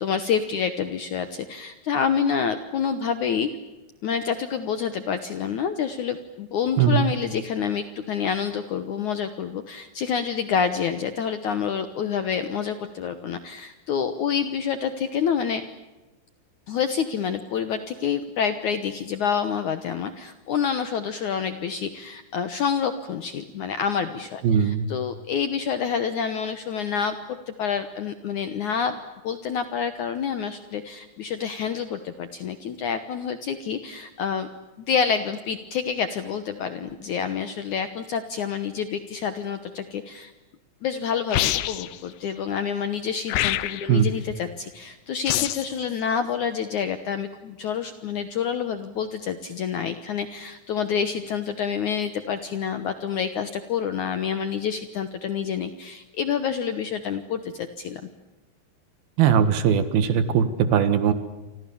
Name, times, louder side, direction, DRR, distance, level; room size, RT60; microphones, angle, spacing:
voice 1, 0.0-3.5 4.0-15.7 16.7-29.0 29.2-34.5 34.9-40.3 40.8-58.1, left 7 dB, 70° left, 10 dB, 1.9 m, -28 dB
voice 2, 6.8-7.1 24.4-24.9 43.9-44.1 59.2-61.1, right 7 dB, 70° right, 12 dB, 3.2 m, -20 dB
sound 1, 41.3-42.0 43.3-44.0 45.3-45.7, left 14 dB, 90° left, 3.2 m, -25 dB
29.0 x 25.5 x 7.1 m, 1.1 s
omnidirectional pair, 4.8 m